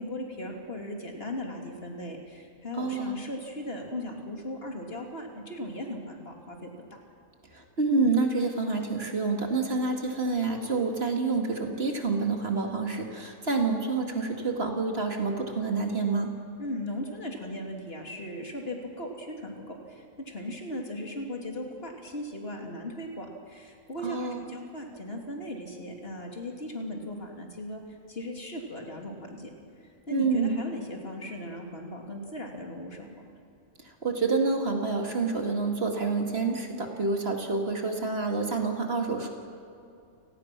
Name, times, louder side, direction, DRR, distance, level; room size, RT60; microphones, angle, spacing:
voice 1, 0.0-6.7 16.6-29.5 30.1-33.3, left 1 dB, 45° left, 1 dB, 2.9 m, -38 dB
voice 2, 2.8-3.2 7.8-16.3 24.0-24.5 30.1-30.6 34.0-39.3, right 3 dB, 50° right, 2 dB, 2.4 m, -28 dB
29.5 x 18.0 x 6.1 m, 2.6 s
omnidirectional pair, 1.4 m